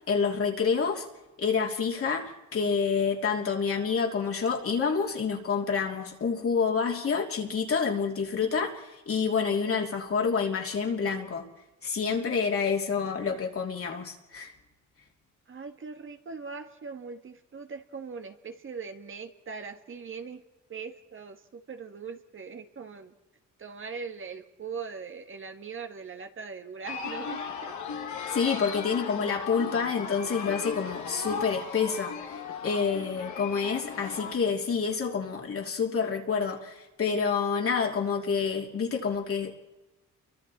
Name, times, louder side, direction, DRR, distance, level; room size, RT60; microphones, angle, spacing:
voice 1, 0.1-1.0 1.4-11.5 11.8-14.5 28.3-39.5, left 5 dB, 45° left, 1 dB, 3.0 m, -28 dB
voice 2, 15.5-20.4 20.7-23.1 23.6-27.7 28.8-29.0, right 5 dB, 40° right, 6 dB, 1.8 m, -41 dB
sound 1, 26.8-34.4, left 6 dB, 75° left, 2.3 m, -37 dB
29.0 x 23.5 x 4.3 m, 1.1 s
cardioid pair, 90°, 30 cm